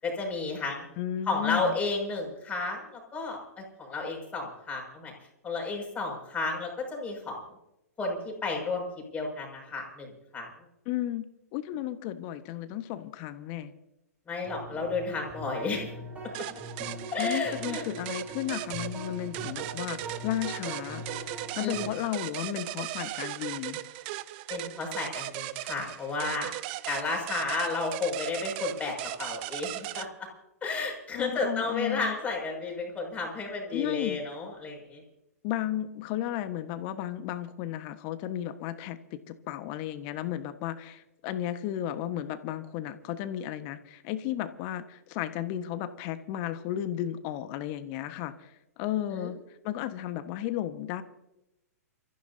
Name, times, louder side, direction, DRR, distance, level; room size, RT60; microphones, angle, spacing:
voice 1, 0.0-0.9 1.3-5.1 5.4-7.4 8.0-8.9 9.1-10.5 14.3-15.9 17.1-17.8 21.6-21.9 24.5-26.5 26.9-28.9 29.2-30.3 30.6-35.0 49.0-49.3, left 3 dB, 15° left, -1 dB, 6.4 m, -32 dB
voice 2, 1.0-1.8 10.8-11.3 11.5-13.7 17.2-21.0 21.6-23.8 31.1-32.1 33.7-34.2 35.4-48.5 48.8-49.4 49.6-51.0, left 12 dB, 40° left, 10 dB, 1.4 m, -34 dB
sound 1, 14.4-21.9, right 1 dB, 15° right, 3.8 m, -41 dB
sound 2, 16.3-30.1, right 16 dB, 40° right, 0.7 m, -38 dB
29.0 x 15.0 x 2.8 m, 0.88 s
figure-of-eight pair, 115°, 9 cm